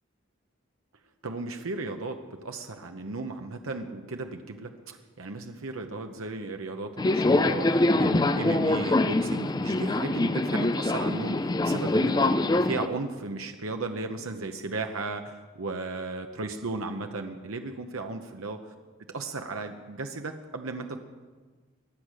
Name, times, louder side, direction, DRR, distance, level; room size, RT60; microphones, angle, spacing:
voice 1, 1.2-18.7 19.1-21.0, right 3 dB, 80° right, 5 dB, 0.9 m, -35 dB
Subway metro underground, 7.0-12.9, left 2 dB, 20° left, 0.4 m, -24 dB
22.0 x 8.3 x 6.3 m, 1.4 s
head